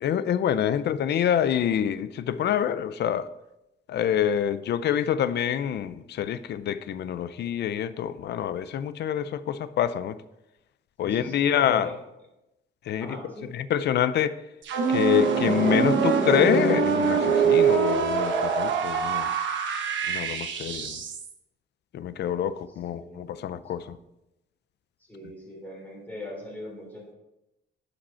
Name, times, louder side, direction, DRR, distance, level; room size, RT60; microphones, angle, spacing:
voice 1, 0.0-3.2 3.9-10.2 11.0-11.9 12.9-13.2 13.5-14.4 14.9-19.3 20.1-21.0 21.9-24.0, left 9 dB, 65° left, 0.5 m, -26 dB
voice 2, 11.0-12.0 13.0-13.5 22.7-23.4 23.8-24.0 25.1-27.1, left 2 dB, 10° left, 3.3 m, -41 dB
sound 1, 14.6-21.3, right 6 dB, 80° right, 1.2 m, -24 dB
10.0 x 5.2 x 4.2 m
cardioid pair, 140°, 19 cm